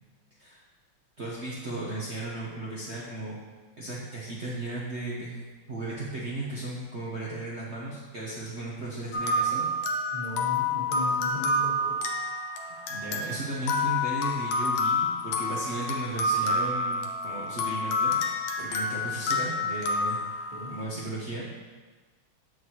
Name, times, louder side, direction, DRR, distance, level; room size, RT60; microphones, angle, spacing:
voice 1, 1.2-3.4 3.8-5.4 5.7-9.7 12.6-18.1 18.6-20.3 20.7-21.5, right 2 dB, 80° right, -6 dB, 0.6 m, -35 dB
sound 1, 9.1-20.8, left 2 dB, 85° left, 1.6 m, -28 dB
voice 2, 10.1-12.0 20.5-20.8, left 1 dB, 25° right, -8 dB, 1.1 m, -37 dB
7.9 x 4.6 x 3.0 m, 1.3 s
omnidirectional pair, 2.4 m